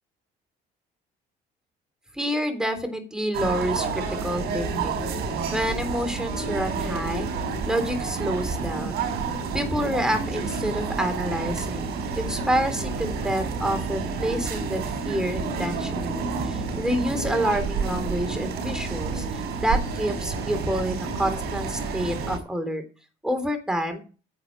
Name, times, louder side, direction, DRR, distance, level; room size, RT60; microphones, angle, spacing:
voice 1, 2.1-5.0 5.5-7.3 7.7-9.0 9.5-22.8 23.2-24.0, equal, 5° right, 6 dB, 3.4 m, -28 dB
sound 1, 3.3-22.4, right 4 dB, 75° right, 5.2 m, -29 dB
sound 2, 5.0-5.1 5.7-5.9 6.5-6.7 7.6-7.7 8.4-8.6 9.2-9.3, right 4 dB, 50° right, 3.6 m, -36 dB
10.5 x 8.1 x 7.2 m, 0.35 s
cardioid pair, 110°, 17 cm